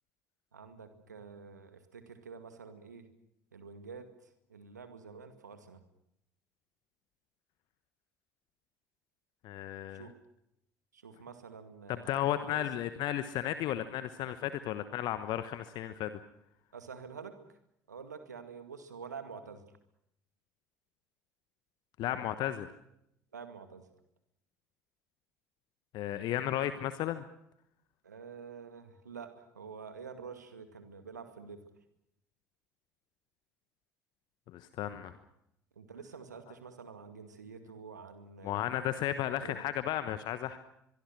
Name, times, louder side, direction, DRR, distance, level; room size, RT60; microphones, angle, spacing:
voice 1, 0.5-3.1 3.5-4.1 4.5-5.8 9.9-10.1 10.9-12.1 12.5-12.6 16.7-17.4 17.9-19.6 23.3-23.8 28.0-31.6 35.8-38.7 39.4-39.6, right 5 dB, 80° right, 9 dB, 2.1 m, -47 dB
voice 2, 9.4-10.1 11.9-16.1 22.0-22.7 25.9-27.2 34.5-35.2 38.4-40.6, left 12 dB, 55° left, 11 dB, 1.2 m, -34 dB
23.5 x 23.0 x 6.3 m, 0.77 s
figure-of-eight pair, 55°, 9 cm